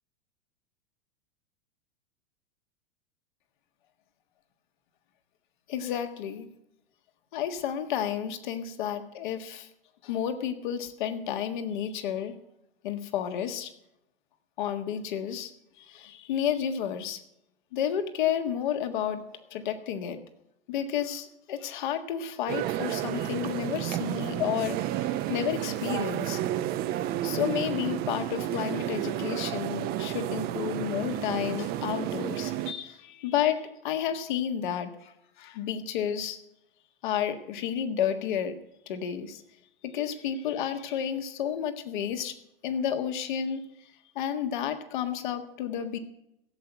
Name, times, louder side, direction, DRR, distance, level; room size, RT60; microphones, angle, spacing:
voice 1, 5.7-6.5 7.3-9.7 10.0-12.3 12.8-13.7 14.6-15.5 15.8-17.2 17.7-20.2 20.7-26.4 27.2-36.4 37.0-38.5 38.9-39.4 39.8-42.3 42.6-43.7 44.1-46.0, left 9 dB, 55° left, 7 dB, 1.6 m, -31 dB
sound 1, 22.5-32.7, right 12 dB, 30° right, 0.8 m, -31 dB
16.5 x 8.0 x 8.0 m, 0.82 s
figure-of-eight pair, 90°, 29 cm